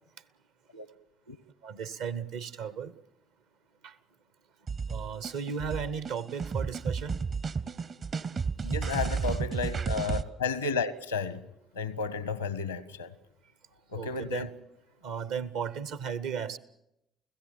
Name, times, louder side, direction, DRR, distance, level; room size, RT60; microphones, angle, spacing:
voice 1, 1.6-2.9 3.8-3.9 4.9-7.2 14.0-14.5 15.0-16.6, right 7 dB, 65° right, 1.0 m, -35 dB
sound 1, 4.7-10.2, right 5 dB, 45° right, 0.9 m, -32 dB
voice 2, 8.6-11.4 11.8-13.1 13.9-14.5, left 4 dB, 85° left, 0.9 m, -32 dB
29.5 x 16.5 x 7.2 m
figure-of-eight pair, 45°, 0 cm